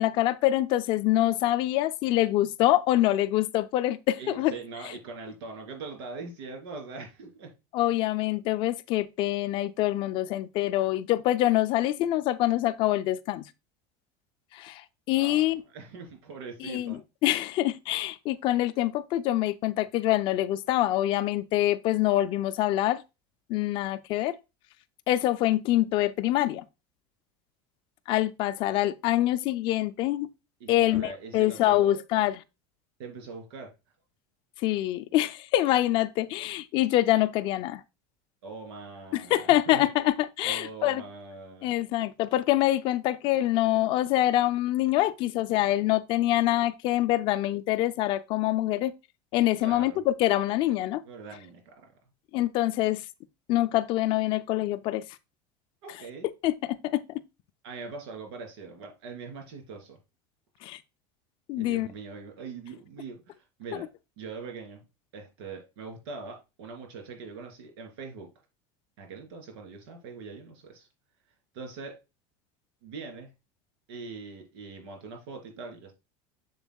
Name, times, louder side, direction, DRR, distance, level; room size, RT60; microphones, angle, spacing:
voice 1, 0.0-4.5 7.7-13.4 14.5-14.8 15.1-15.6 16.6-23.0 23.5-24.4 25.1-26.6 28.1-30.3 30.7-32.3 34.6-37.8 39.1-41.0 41.6-48.9 49.3-51.0 52.3-53.0 53.5-55.0 56.4-57.0 60.6-60.8 61.5-61.9, left 15 dB, 40° left, 0.4 m, -25 dB
voice 2, 4.2-7.5 15.2-17.0 30.6-31.9 33.0-33.7 38.4-39.9 40.4-41.7 49.6-50.0 51.0-51.7 55.8-56.3 57.6-60.0 61.5-63.9 64.2-64.8 65.1-68.3 69.0-70.9 71.5-71.9 72.8-73.3 73.9-75.9, right 4 dB, 85° right, 3.2 m, -42 dB
7.1 x 7.1 x 2.3 m
cardioid pair, 175°, 13 cm